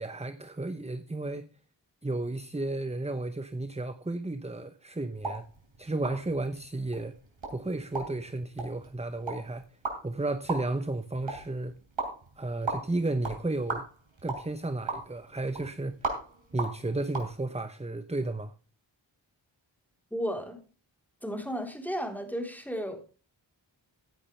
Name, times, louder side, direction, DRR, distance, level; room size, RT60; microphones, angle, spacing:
voice 1, 0.0-1.5 2.0-5.4 5.8-7.2 7.5-9.7 10.0-11.8 12.4-13.9 14.2-16.1 16.5-18.5, right 2 dB, 15° right, 0.9 m, -33 dB
sound 1, 5.1-17.3, right 3 dB, 75° right, 4.7 m, -39 dB
voice 2, 20.1-20.6 21.2-23.0, equal, 5° left, 3.8 m, -33 dB
16.0 x 9.8 x 3.3 m
wide cardioid pair, 45°, 47 cm